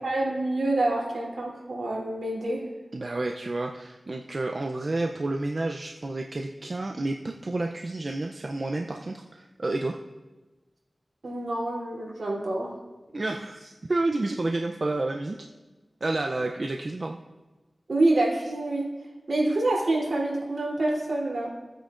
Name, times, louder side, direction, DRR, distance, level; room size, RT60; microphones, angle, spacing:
voice 1, 0.0-2.6 11.2-12.8 17.9-18.9 19.3-21.5, right 2 dB, 80° right, -4 dB, 3.2 m, -26 dB
voice 2, 2.9-10.0 13.1-15.4 16.0-17.2, right 2 dB, 55° right, 3 dB, 0.5 m, -30 dB
15.5 x 9.0 x 2.5 m, 1.2 s
wide cardioid pair, 50°, 0 cm